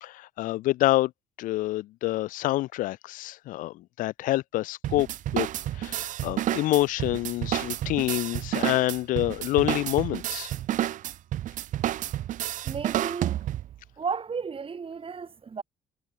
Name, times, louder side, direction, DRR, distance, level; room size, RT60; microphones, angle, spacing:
voice 1, 0.0-1.1 1.4-5.1 5.3-5.5 5.8-10.5, left 17 dB, 50° left, 0.6 m, -27 dB
sound 1, 4.8-13.8, right 12 dB, 50° right, 1.0 m, -30 dB
voice 2, 12.6-13.4 14.0-15.6, right 5 dB, 35° right, 4.4 m, -34 dB
figure-of-eight pair, 45°, 17 cm